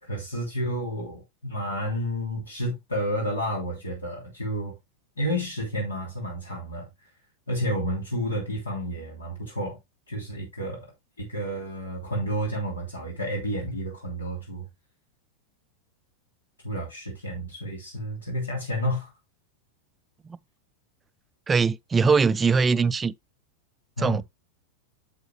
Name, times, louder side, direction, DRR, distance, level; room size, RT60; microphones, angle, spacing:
voice 1, 0.0-4.8 5.2-6.9 7.5-9.8 10.1-10.8 11.2-14.7 16.6-19.1 24.0-24.2, equal, 75° left, 3.1 m, -30 dB
voice 2, 21.5-23.1 24.0-24.2, right 5 dB, 15° right, 0.4 m, -21 dB
9.3 x 7.3 x 2.3 m
figure-of-eight pair, 90°, 0 cm